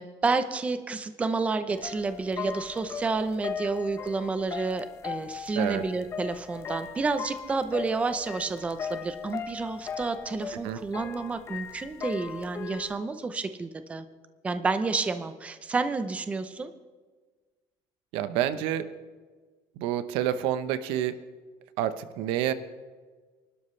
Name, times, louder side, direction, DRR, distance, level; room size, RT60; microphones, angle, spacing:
voice 1, 0.0-14.0 14.4-16.7, right 3 dB, 15° right, 10 dB, 0.6 m, -30 dB
sound 1, 1.7-13.0, left 6 dB, 30° left, 0.8 m, -38 dB
voice 2, 18.1-18.9 19.8-21.2 21.8-22.5, right 11 dB, 80° right, 12 dB, 0.9 m, -28 dB
29.0 x 12.5 x 3.3 m, 1.4 s
cardioid pair, 170°, 9 cm